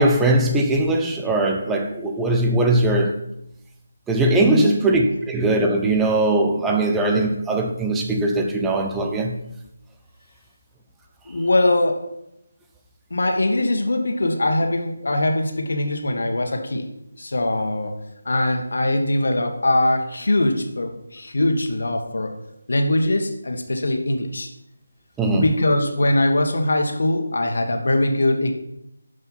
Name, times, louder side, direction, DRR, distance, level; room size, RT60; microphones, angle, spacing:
voice 1, 0.0-3.2 4.1-9.4 25.2-25.4, right 2 dB, 5° right, 0.7 m, -20 dB
voice 2, 4.4-4.8 11.3-12.0 13.1-16.9 17.2-17.9 18.3-22.3 22.7-24.5 25.4-28.5, left 1 dB, 55° left, 1.6 m, -21 dB
12.0 x 5.3 x 5.7 m
figure-of-eight pair, 160°, 0 cm